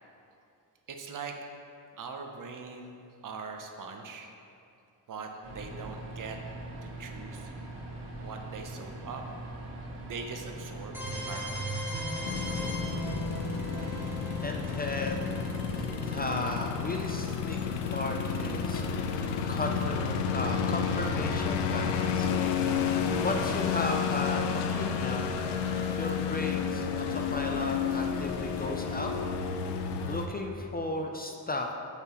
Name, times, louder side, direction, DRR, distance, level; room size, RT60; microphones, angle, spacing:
voice 1, 0.9-1.4 1.9-2.9 3.2-4.3 5.1-6.4 7.0-7.5 8.2-9.2 10.1-11.7, right 5 dB, 50° right, 4 dB, 0.8 m, -41 dB
sound 1, 5.4-16.5, right 2 dB, 85° right, 1.7 m, -42 dB
sound 2, 10.9-20.7, right 1 dB, 5° right, 1.6 m, -40 dB
sound 3, 12.2-30.3, left 6 dB, 85° left, 0.6 m, -31 dB
voice 2, 14.4-15.5 16.1-22.3 22.7-25.4 25.6-25.7 26.0-29.1 30.1-31.7, left 2 dB, 25° left, 2 dB, 0.4 m, -35 dB
8.7 x 5.9 x 3.0 m, 2.6 s
cardioid pair, 105°, 41 cm